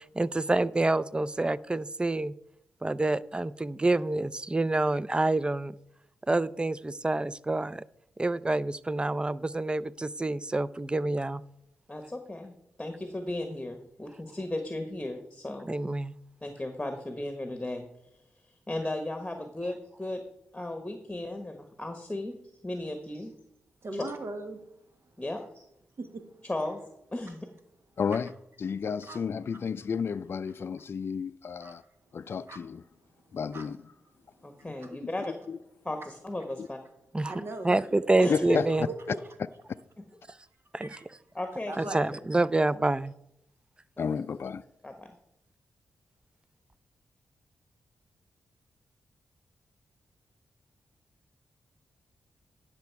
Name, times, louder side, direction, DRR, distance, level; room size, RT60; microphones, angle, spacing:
voice 1, 0.0-2.3 2.8-5.7 6.3-7.8 8.2-11.4 15.7-16.2 37.1-37.3 37.6-38.9 40.8-40.9 41.8-43.1, right 2 dB, 20° right, 0.4 m, -27 dB
voice 2, 11.9-15.7 16.4-17.9 18.1-20.2 20.5-22.4 22.6-23.3 23.9-24.0 25.2-25.6 26.4-26.8 27.1-27.5 34.4-35.3 35.8-36.8 38.2-38.6 41.3-41.9 44.8-45.2, left 1 dB, 15° left, 1.3 m, -35 dB
voice 3, 23.8-24.6 26.0-26.3 29.1-29.2 31.6-31.8 32.5-32.6 33.5-33.6 34.8-34.9 37.2-37.8 38.7-38.8 39.1-39.2 40.8-41.0 41.7-42.1, right 2 dB, 60° right, 1.5 m, -38 dB
voice 4, 28.0-28.3 28.6-31.8 32.1-32.8 33.3-33.9 35.5-35.6 36.6-36.7 38.1-38.6 44.0-44.6, left 6 dB, 55° left, 0.4 m, -32 dB
10.5 x 6.0 x 4.6 m
supercardioid pair, 45°, 5 cm